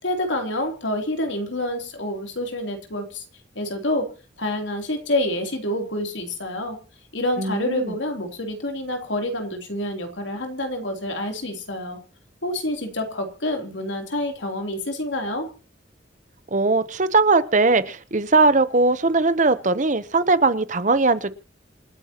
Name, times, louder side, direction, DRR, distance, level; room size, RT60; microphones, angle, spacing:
voice 1, 0.0-3.2 3.5-4.1 4.4-6.8 7.1-12.0 12.4-15.5, left 1 dB, 75° left, 4 dB, 3.3 m, -27 dB
voice 2, 7.4-7.9 16.5-21.3, right 3 dB, 40° right, 14 dB, 0.8 m, -19 dB
27.5 x 9.8 x 3.0 m, 0.35 s
head